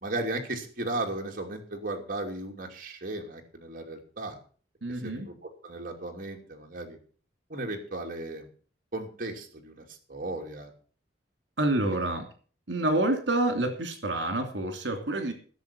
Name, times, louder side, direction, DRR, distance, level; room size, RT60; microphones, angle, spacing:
voice 1, 0.0-4.4 5.0-7.0 7.5-8.5 8.9-10.7, right 2 dB, 50° right, 2 dB, 2.8 m, -35 dB
voice 2, 4.8-5.3 11.6-12.2 12.7-15.3, right 2 dB, 70° right, 5 dB, 2.8 m, -28 dB
16.5 x 7.2 x 7.0 m, 0.41 s
head